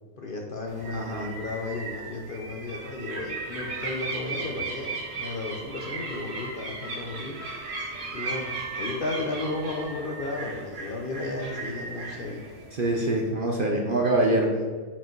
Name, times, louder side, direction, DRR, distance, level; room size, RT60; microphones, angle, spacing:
voice 1, 0.2-7.4 8.1-8.5 8.8-12.5 14.2-14.6, left 2 dB, 50° left, 0 dB, 0.7 m, -34 dB
sound 1, 0.7-13.1, right 3 dB, 70° right, 1.8 m, -36 dB
voice 2, 0.9-1.3 12.7-14.5, right 2 dB, 50° right, 0 dB, 0.7 m, -24 dB
5.7 x 5.0 x 4.5 m, 1.5 s
omnidirectional pair, 1.5 m